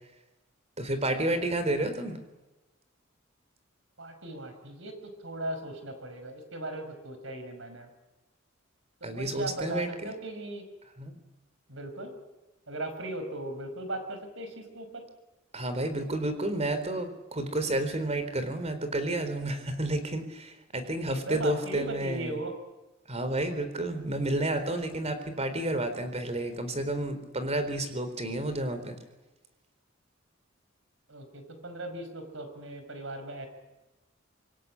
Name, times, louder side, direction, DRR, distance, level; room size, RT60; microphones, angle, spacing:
voice 1, 0.8-2.2 9.0-10.1 11.0-11.2 15.5-22.4 23.1-29.0, right 1 dB, 35° right, 9 dB, 4.1 m, -31 dB
voice 2, 4.0-7.9 9.0-10.6 11.7-12.1 12.7-15.0 21.1-22.5 31.1-33.5, right 1 dB, 70° right, 7 dB, 5.5 m, -38 dB
26.5 x 22.0 x 9.8 m, 1.1 s
head